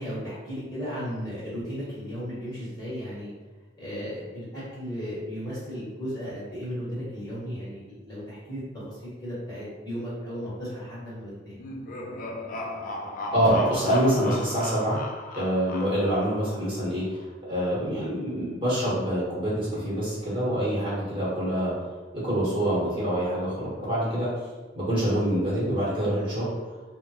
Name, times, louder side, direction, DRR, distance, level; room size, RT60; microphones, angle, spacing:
voice 1, 0.0-3.3 3.8-11.6, equal, 20° left, -9 dB, 1.1 m, -35 dB
sound 1, 11.5-16.7, left 2 dB, 45° left, 0.3 m, -36 dB
voice 2, 13.3-15.0 15.3-21.7 22.1-24.3 24.7-26.5, right 1 dB, 25° right, -8 dB, 1.1 m, -26 dB
3.2 x 2.1 x 2.8 m, 1.3 s
head